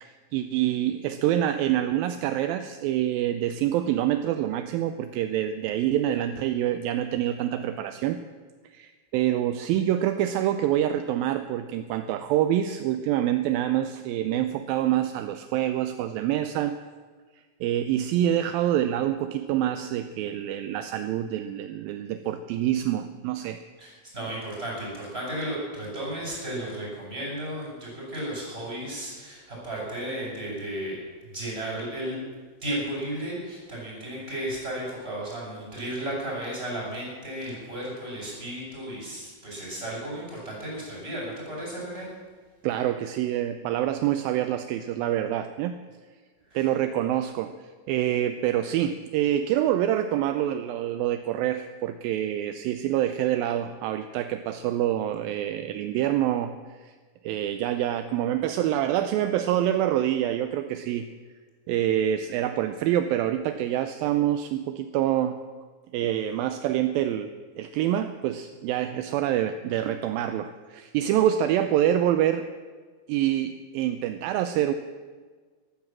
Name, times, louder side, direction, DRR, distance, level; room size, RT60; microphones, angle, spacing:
voice 1, 0.0-8.2 8.7-16.8 17.6-23.6 42.6-45.8 46.6-47.5 47.9-56.9 57.2-61.1 61.7-65.4 65.9-67.3 67.6-72.4 73.1-74.7, right 11 dB, 80° right, 9 dB, 2.2 m, -26 dB
voice 2, 23.8-31.0 31.3-32.2 32.6-42.1 46.5-46.6, right 1 dB, 15° right, -4 dB, 6.6 m, -34 dB
14.0 x 13.0 x 7.5 m, 1.5 s
omnidirectional pair, 4.6 m